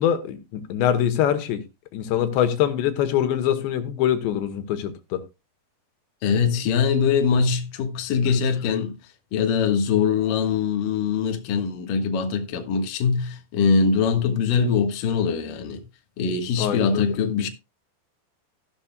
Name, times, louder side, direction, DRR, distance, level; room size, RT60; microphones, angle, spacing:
voice 1, 0.0-1.6 1.9-5.2 16.6-17.0, left 10 dB, 85° left, 3.2 m, -23 dB
voice 2, 6.2-9.0 9.3-15.8 16.2-17.5, left 6 dB, 60° left, 2.7 m, -22 dB
14.5 x 11.5 x 2.3 m
omnidirectional pair, 5.0 m